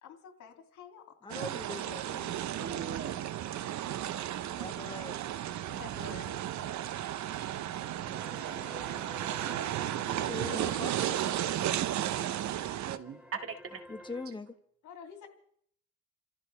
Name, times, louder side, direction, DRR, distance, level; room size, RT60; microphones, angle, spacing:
voice 1, 0.0-1.3 5.7-6.3 14.8-15.3, left 7 dB, 80° left, 2.7 m, -49 dB
voice 2, 1.2-2.4 2.9-3.0 4.5-5.2 10.1-11.2 12.0-12.2 13.9-14.6, left 3 dB, 15° left, 1.5 m, -42 dB
sound 1, 1.3-13.0, right 12 dB, 70° right, 0.8 m, -34 dB
voice 3, 2.5-3.2 6.5-6.6 8.0-9.0 12.8-13.8, right 6 dB, 45° right, 2.0 m, -42 dB
sound 2, 7.8-14.3, equal, 5° right, 2.3 m, -50 dB
29.5 x 14.5 x 3.4 m
cardioid pair, 90°, 30 cm